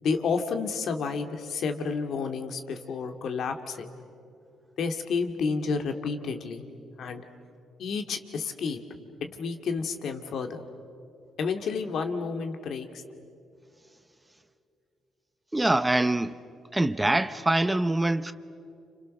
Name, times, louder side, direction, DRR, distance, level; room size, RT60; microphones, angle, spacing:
voice 1, 0.0-4.0 4.8-6.7 7.0-7.2 7.8-8.8 9.2-10.6 11.4-13.0, left 5 dB, 65° left, 2.2 m, -30 dB
voice 2, 15.5-16.3 16.7-18.3, right 1 dB, 10° right, 0.8 m, -24 dB
29.5 x 27.5 x 6.6 m
cardioid pair, 90°, 0 cm